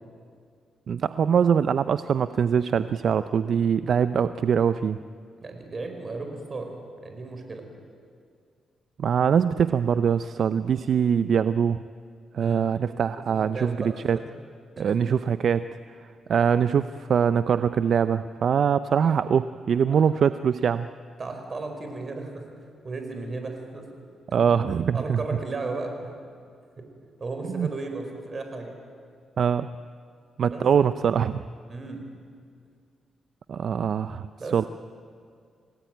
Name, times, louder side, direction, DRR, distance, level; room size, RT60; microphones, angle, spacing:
voice 1, 0.9-5.0 9.0-11.8 12.3-13.8 14.0-14.2 14.8-15.8 16.3-20.9 24.3-25.2 27.5-27.7 29.4-29.7 30.4-31.4 33.5-34.3 34.5-34.6, right 7 dB, 60° right, 13 dB, 0.5 m, -23 dB
voice 2, 5.4-6.7 7.0-7.7 12.4-12.6 13.2-14.0 14.8-15.0 21.2-22.5 22.8-23.9 24.3-24.5 24.9-26.1 27.2-28.7 30.5-30.6 31.7-32.1 34.4-34.7, right 3 dB, 40° right, 4 dB, 5.1 m, -35 dB
28.0 x 19.0 x 9.3 m, 2.2 s
cardioid pair, 90°, 0 cm